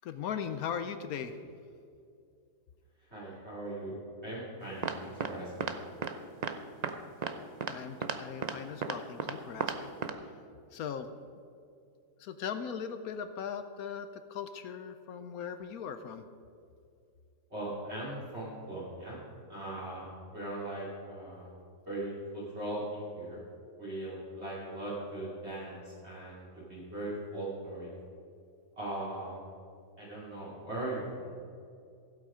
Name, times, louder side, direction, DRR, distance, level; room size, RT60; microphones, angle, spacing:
voice 1, 0.0-1.4 7.7-9.9 10.7-11.1 12.2-16.2, left 7 dB, 70° left, 10 dB, 1.1 m, -39 dB
voice 2, 3.0-5.8 17.5-19.2 19.5-21.5 21.9-23.4 23.8-27.9 28.8-29.4 30.0-31.3, right 1 dB, 40° right, -9 dB, 2.9 m, -39 dB
sound 1, 4.8-5.3 5.6-5.7 6.0-6.1 6.4-6.5 6.8-6.9 7.2-7.3 7.6-7.7 8.0-8.2 8.4-8.5 8.8-9.3 9.6-9.8 10.0-10.1, right 6 dB, 85° right, 0.3 m, -33 dB
15.5 x 8.2 x 5.0 m, 2.4 s
omnidirectional pair, 1.7 m